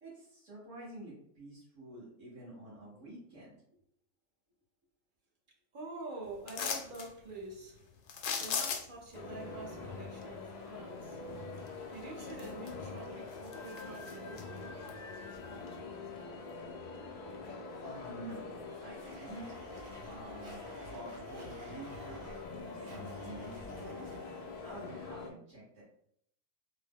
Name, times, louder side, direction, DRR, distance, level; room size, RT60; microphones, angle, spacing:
voice 1, 0.0-3.6 17.8-19.5 20.0-23.9 24.6-25.8, right 1 dB, 60° right, -9 dB, 1.8 m, -49 dB
voice 2, 5.7-7.9 8.4-11.2 11.9-14.8, right 2 dB, 45° right, -1 dB, 0.8 m, -47 dB
sound 1, 6.5-7.1 8.1-9.1 11.7-11.8 12.3-13.0 13.3-14.4 14.9-15.0, left 6 dB, 75° left, 1.0 m, -36 dB
sound 2, 9.1-25.3, left 3 dB, 60° left, 0.4 m, -45 dB
Domestic sounds home sounds, 19.0-24.7, right 1 dB, 90° right, 1.2 m, -52 dB
3.6 x 2.0 x 3.6 m, 0.70 s
omnidirectional pair, 1.3 m